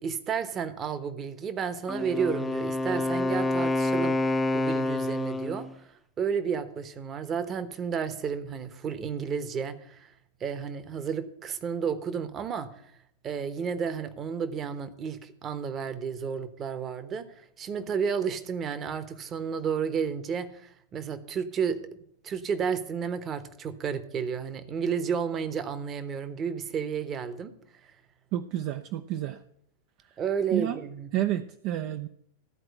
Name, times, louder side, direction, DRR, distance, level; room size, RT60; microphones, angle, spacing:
voice 1, 0.0-10.1 10.4-12.9 13.2-21.8 22.2-27.5 27.8-27.9 30.2-31.1, right 6 dB, 25° right, 11 dB, 1.0 m, -32 dB
Wind instrument woodwind instrument, 1.9-5.7, left 2 dB, 10° left, 0.7 m, -28 dB
voice 2, 28.3-29.4 30.5-30.8 31.1-32.1, right 13 dB, 45° right, 9 dB, 0.5 m, -30 dB
13.5 x 4.8 x 7.6 m, 0.70 s
figure-of-eight pair, 90°, 0 cm